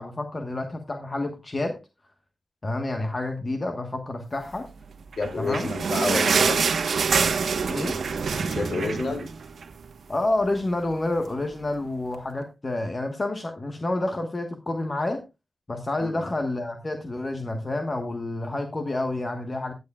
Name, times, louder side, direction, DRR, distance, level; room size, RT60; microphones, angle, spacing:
voice 1, 0.0-1.8 2.6-4.7 5.4-5.7 7.7-8.0 10.1-15.2 15.7-19.7, left 2 dB, 35° left, 5 dB, 1.3 m, -29 dB
sound 1, 5.1-9.8 10.2-10.3 10.6-10.7 11.4-11.5, right 5 dB, 85° right, 1.2 m, -25 dB
voice 2, 5.2-6.6 8.5-9.3 16.0-16.2, left 3 dB, 65° left, 5 dB, 2.9 m, -29 dB
15.5 x 9.4 x 2.3 m, 0.24 s
wide cardioid pair, 90°, 0 cm